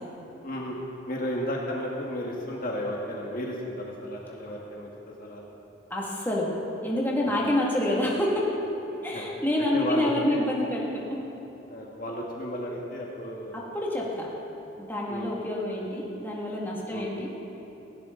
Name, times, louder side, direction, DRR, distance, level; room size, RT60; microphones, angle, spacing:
voice 1, 0.4-0.8 1.1-5.5 9.0-9.2 9.6-10.4 11.7-13.6 15.1-15.3 16.9-17.1, equal, 45° left, -2 dB, 1.7 m, -33 dB
voice 2, 5.9-6.5 6.8-8.5 9.0-11.2 13.5-14.3 14.8-17.3, left 1 dB, 10° left, -4 dB, 2.2 m, -27 dB
18.5 x 16.5 x 3.9 m, 3.0 s
head